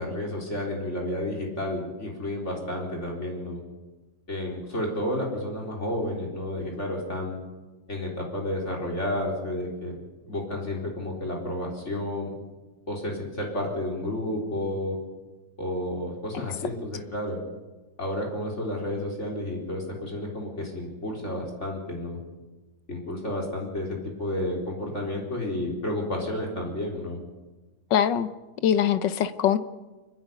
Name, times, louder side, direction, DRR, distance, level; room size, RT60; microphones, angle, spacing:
voice 1, 0.0-3.6 4.3-7.4 7.9-9.9 10.3-12.3 12.9-15.0 15.6-17.4 18.0-22.2 22.9-27.2, left 1 dB, 40° left, -1 dB, 4.4 m, -31 dB
voice 2, 27.9-28.3 28.6-29.6, left 9 dB, 75° left, 13 dB, 1.6 m, -22 dB
29.5 x 10.5 x 9.4 m, 1.2 s
omnidirectional pair, 1.9 m